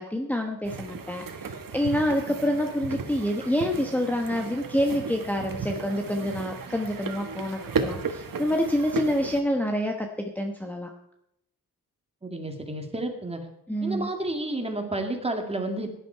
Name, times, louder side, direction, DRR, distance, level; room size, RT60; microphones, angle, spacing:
voice 1, 0.0-10.9 13.7-14.1, equal, 5° left, 2 dB, 1.1 m, -27 dB
sound 1, 0.6-9.4, right 5 dB, 70° right, 1.7 m, -35 dB
voice 2, 12.2-13.4 13.8-15.9, right 2 dB, 15° right, 4 dB, 2.2 m, -31 dB
17.0 x 11.0 x 4.6 m, 0.80 s
wide cardioid pair, 170°, 34 cm